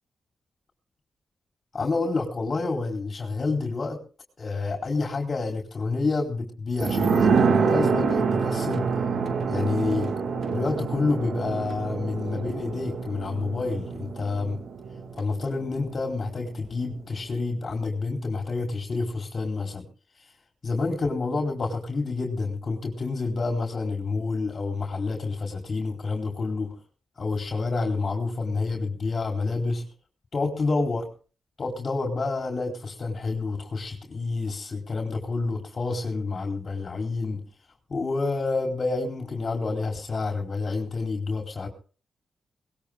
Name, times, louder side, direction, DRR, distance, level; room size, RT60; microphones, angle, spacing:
voice 1, 1.7-4.0 4.4-8.9 9.5-10.1 10.5-14.6 15.2-19.9 20.2-20.3 20.6-26.8 27.2-29.9 30.3-31.1 31.6-37.4 37.9-41.7, left 3 dB, 45° left, 3 dB, 4.1 m, -28 dB
sound 1, 6.8-16.1 16.4-16.5, right 5 dB, 65° right, 2.3 m, -26 dB
22.5 x 20.0 x 2.3 m, 0.38 s
cardioid pair, 90°, 0 cm